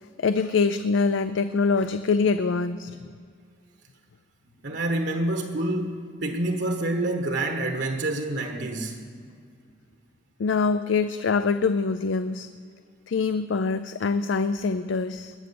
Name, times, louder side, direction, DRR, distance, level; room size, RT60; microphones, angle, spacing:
voice 1, 0.2-3.0 10.4-12.5 13.1-15.3, left 4 dB, 80° left, 11 dB, 0.4 m, -24 dB
voice 2, 4.6-9.0, right 2 dB, 65° right, 4 dB, 1.2 m, -27 dB
21.0 x 8.0 x 6.9 m, 2.2 s
head